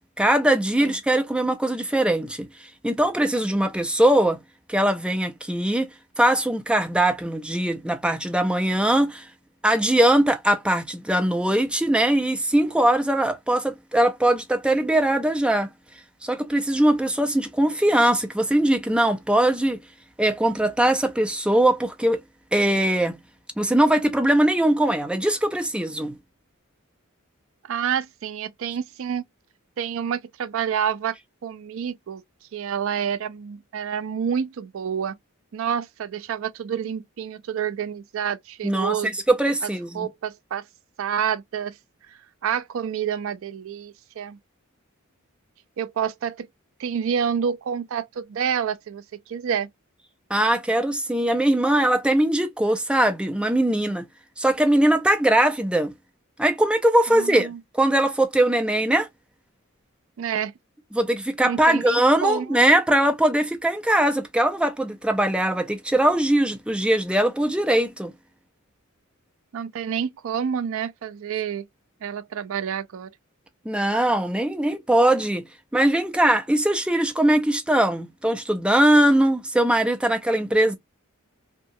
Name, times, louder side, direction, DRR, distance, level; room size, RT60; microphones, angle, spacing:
voice 1, 0.2-2.5 2.8-4.4 4.7-5.9 6.2-9.2 9.6-15.7 16.2-19.8 20.2-22.2 22.5-23.2 23.6-26.1 38.6-39.0 39.3-40.1 50.3-54.1 54.4-55.9 56.4-59.1 60.9-68.1 73.7-75.4 75.7-80.7, right 1 dB, 5° right, 0.5 m, -21 dB
voice 2, 27.7-29.2 29.8-31.2 31.4-32.2 32.5-35.2 35.5-39.1 39.6-39.7 39.9-40.6 41.0-41.7 42.1-44.4 45.8-46.5 46.8-49.7 57.1-57.6 60.2-60.5 61.4-62.6 69.5-71.7 72.0-73.1, right 8 dB, 65° right, 0.4 m, -28 dB
2.9 x 2.3 x 2.6 m
head